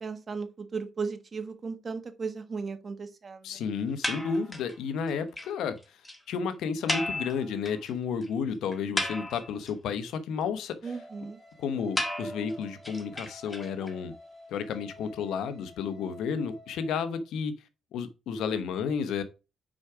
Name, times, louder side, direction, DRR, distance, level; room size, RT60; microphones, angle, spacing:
voice 1, 0.0-3.6 10.8-11.4, right 5 dB, 40° right, 1.3 m, -36 dB
voice 2, 3.4-6.0 6.3-10.9 11.6-14.1 14.5-17.5 17.9-19.2, left 6 dB, 80° left, 1.0 m, -32 dB
sound 1, 4.0-4.8 5.1-5.2 5.4-5.5 5.8-5.9 6.1-6.2 6.9-7.9 8.2-8.3 8.7-9.7 12.0-13.9, left 1 dB, 15° left, 1.7 m, -33 dB
sound 2, 10.8-17.2, equal, 20° right, 3.1 m, -49 dB
6.2 x 4.9 x 4.9 m
cardioid pair, 90°, 0 cm